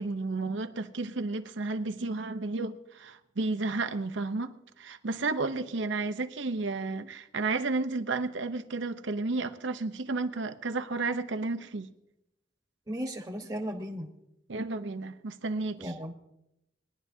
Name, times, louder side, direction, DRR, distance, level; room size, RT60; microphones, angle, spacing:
voice 1, 0.0-11.9 14.5-15.9, right 3 dB, 75° right, 0.8 m, -32 dB
voice 2, 12.9-14.1 15.8-16.1, equal, 20° right, 1.2 m, -35 dB
21.5 x 11.0 x 2.8 m
head